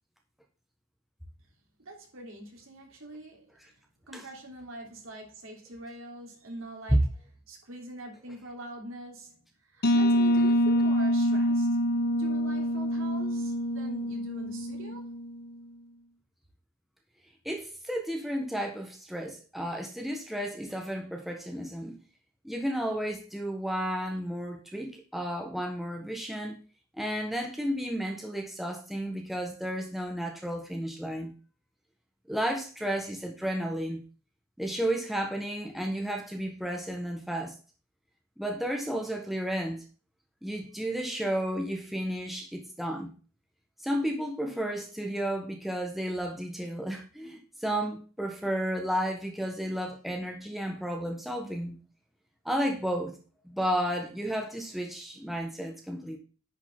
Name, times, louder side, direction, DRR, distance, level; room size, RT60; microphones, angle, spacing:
voice 1, 1.8-3.8 4.1-7.0 7.5-9.4 9.7-11.8 12.1-15.1, right 1 dB, 70° right, 3.4 m, -44 dB
sound 1, 9.8-15.4, equal, 50° left, 1.0 m, -26 dB
voice 2, 17.4-22.0 22.4-26.6 26.9-31.3 32.3-34.0 34.6-37.6 38.4-39.8 40.4-43.1 43.8-51.8 52.4-53.2 53.4-56.2, equal, ahead, 1.4 m, -32 dB
10.5 x 6.0 x 3.7 m
head